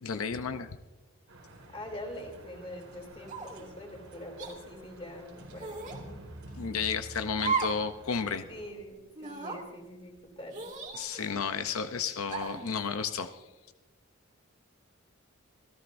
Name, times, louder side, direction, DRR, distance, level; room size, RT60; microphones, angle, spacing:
voice 1, 0.0-0.7 6.5-8.4 10.9-13.4, left 6 dB, 90° left, 9 dB, 0.7 m, -32 dB
sound 1, 1.3-8.7, right 1 dB, 90° right, 4.2 m, -49 dB
voice 2, 1.7-6.2 8.5-10.7, left 1 dB, 25° left, 3 dB, 3.0 m, -44 dB
sound 2, 3.3-3.7 4.4-4.6 5.6-6.0 7.3-7.9 8.2-8.3 9.2-9.6 10.5-11.4 12.3-12.7, right 5 dB, 35° right, 2.0 m, -35 dB
26.5 x 14.5 x 2.6 m, 1.2 s
head